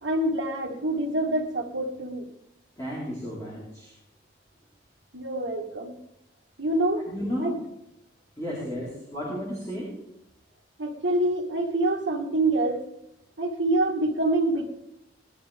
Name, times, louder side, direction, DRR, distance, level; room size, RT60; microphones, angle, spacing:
voice 1, 0.0-2.3 5.1-6.0 6.6-7.1 7.4-7.5 10.8-12.8 13.4-14.7, right 1 dB, 80° right, -1 dB, 1.8 m, -26 dB
voice 2, 2.8-3.9 7.1-7.6 8.4-9.9, equal, 20° left, -7 dB, 4.6 m, -33 dB
20.5 x 12.5 x 3.6 m, 0.81 s
head